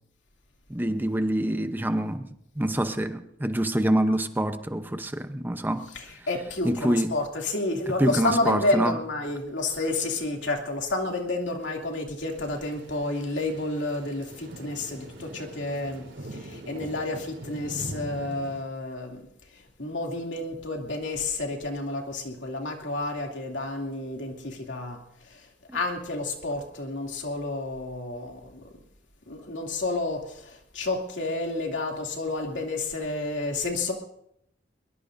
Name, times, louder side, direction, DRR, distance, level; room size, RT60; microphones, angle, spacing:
voice 1, 0.7-2.3 2.6-5.9 6.6-7.1 8.0-8.9, right 1 dB, 10° right, 0.8 m, -26 dB
voice 2, 5.8-28.7 29.3-33.9, left 2 dB, 90° left, 2.7 m, -30 dB
Thunder / Rain, 12.3-18.6, right 1 dB, 90° right, 3.6 m, -42 dB
22.5 x 22.0 x 2.6 m
head